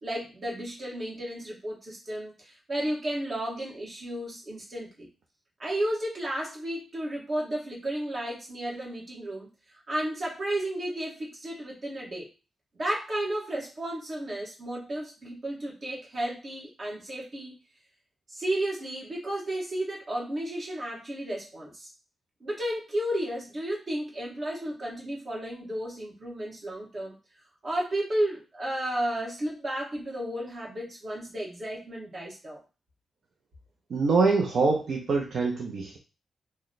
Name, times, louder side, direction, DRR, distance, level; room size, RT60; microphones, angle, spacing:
voice 1, 0.0-5.1 5.6-9.5 9.9-12.3 12.7-17.5 18.3-21.9 22.4-27.2 27.6-32.6, right 1 dB, 40° right, -3 dB, 1.3 m, -33 dB
voice 2, 33.9-36.0, right 4 dB, 65° right, 0 dB, 0.5 m, -24 dB
3.0 x 2.1 x 4.0 m, 0.31 s
wide cardioid pair, 125°, 0 cm